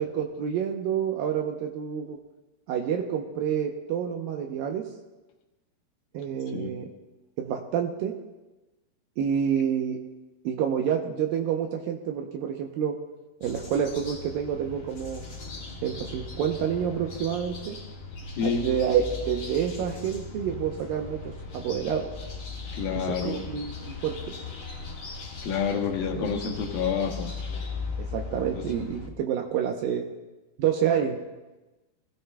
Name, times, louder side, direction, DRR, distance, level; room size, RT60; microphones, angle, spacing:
voice 1, 0.0-2.2 2.7-4.9 6.1-6.9 7.4-8.1 9.2-10.0 10.4-13.0 13.4-15.2 15.8-17.8 18.4-22.1 22.9-24.3 26.1-26.4 28.0-30.0 30.6-31.2, right 8 dB, 75° right, 3 dB, 2.2 m, -28 dB
sound 1, 13.4-29.1, left 4 dB, 50° left, 2.8 m, -38 dB
voice 2, 18.4-18.7 22.7-23.4 25.4-27.3 28.5-28.6, left 6 dB, 70° left, 1 dB, 2.8 m, -28 dB
23.5 x 16.0 x 2.3 m, 1.1 s
omnidirectional pair, 4.7 m